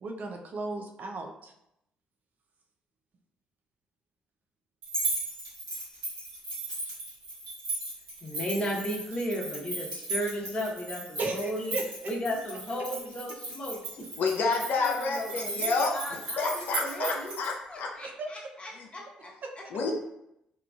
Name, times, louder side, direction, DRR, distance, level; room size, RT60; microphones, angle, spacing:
voice 1, 0.0-1.5 11.2-12.1 15.3-15.4 17.0-17.2 18.0-18.3 19.4-19.5, right 2 dB, 55° right, 3 dB, 0.5 m, -35 dB
sound 1, 4.8-17.5, right 2 dB, 85° right, 1.2 m, -36 dB
voice 2, 8.2-11.8 12.1-14.1 14.8-17.3 17.7-19.3, equal, 35° left, -2 dB, 0.9 m, -35 dB
voice 3, 14.2-15.9 16.4-17.5 17.8-17.9 18.8-18.9 19.7-19.9, left 4 dB, 65° left, 1 dB, 0.5 m, -29 dB
2.9 x 2.3 x 2.3 m, 0.81 s
hypercardioid pair, 50°, 3 cm